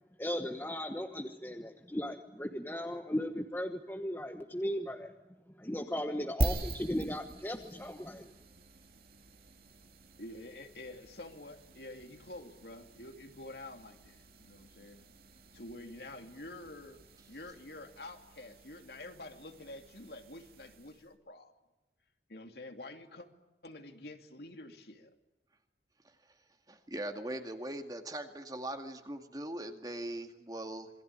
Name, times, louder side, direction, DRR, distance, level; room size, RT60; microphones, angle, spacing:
voice 1, 0.2-5.1 5.6-8.3, equal, 10° left, 4 dB, 1.2 m, -37 dB
sound 1, 6.4-21.1, right 1 dB, 55° right, 2.6 m, -43 dB
voice 2, 10.2-15.1 15.5-17.0 17.3-21.5 22.3-23.3 23.6-25.1, left 2 dB, 65° left, 5 dB, 2.8 m, -48 dB
voice 3, 26.7-30.9, right 1 dB, 20° right, 6 dB, 2.2 m, -40 dB
27.0 x 22.0 x 9.0 m, 1.1 s
head